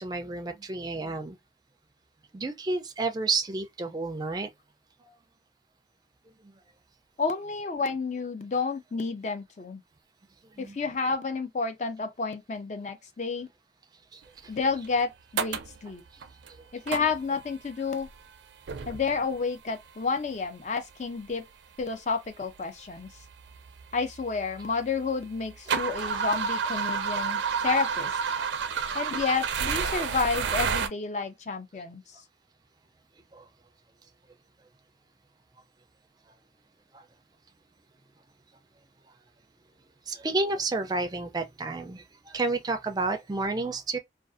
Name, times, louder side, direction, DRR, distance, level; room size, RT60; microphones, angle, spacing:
voice 1, 0.0-1.4 2.3-4.5 10.6-10.8 28.3-28.5 33.3-33.4 40.1-42.0 42.3-44.0, right 3 dB, 20° right, 0.4 m, -30 dB
voice 2, 7.2-9.8 10.6-13.5 14.5-16.0 16.7-18.1 18.9-21.4 21.8-23.1 23.9-28.2 28.9-32.0, left 4 dB, 40° left, 0.4 m, -30 dB
sound 1, 14.8-14.9 15.4-15.8 16.2-16.5 16.9-17.5 18.0-18.3 18.7-19.3 20.3-20.4 21.3-21.4 21.8-21.9 22.6-22.7 22.9-24.8 25.2-30.9, right 6 dB, 85° right, 0.4 m, -30 dB
2.5 x 2.3 x 2.4 m
head